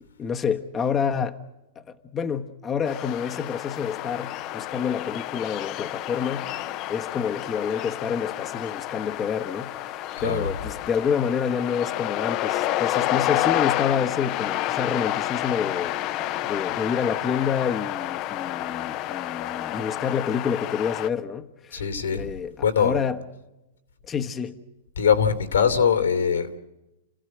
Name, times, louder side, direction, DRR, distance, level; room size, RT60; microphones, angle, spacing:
voice 1, 0.0-1.4 1.8-6.6 6.9-21.8 22.1-23.2 24.0-24.6, left 7 dB, 20° left, 1.1 m, -28 dB
sound 1, 2.9-21.1, left 14 dB, 40° left, 0.8 m, -29 dB
voice 2, 10.2-10.5 21.7-22.3 22.6-22.9 25.0-26.6, left 7 dB, 90° left, 3.0 m, -22 dB
30.0 x 15.5 x 7.8 m
hypercardioid pair, 125°, 0 cm